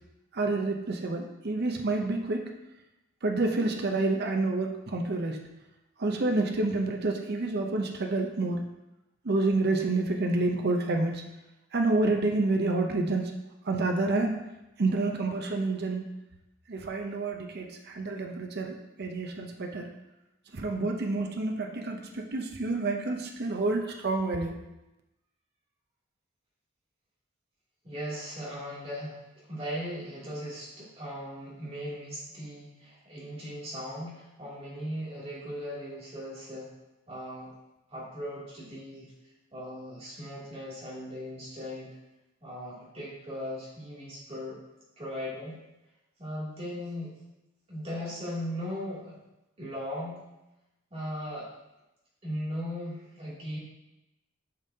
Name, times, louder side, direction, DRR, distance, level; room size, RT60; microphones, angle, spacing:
voice 1, 0.3-2.4 3.2-5.4 6.0-8.6 9.2-11.2 11.7-13.2 13.7-14.4 14.8-16.0 16.7-19.9 20.5-24.5, right 2 dB, 50° right, 3 dB, 0.7 m, -28 dB
voice 2, 27.8-36.7 37.1-37.5 37.9-39.1 39.5-41.9 42.4-44.6 45.0-45.6 46.2-47.2 47.7-49.2 49.6-50.2 50.9-51.5 52.2-53.6, equal, 30° right, -8 dB, 2.6 m, -38 dB
8.8 x 5.3 x 2.8 m, 0.96 s
head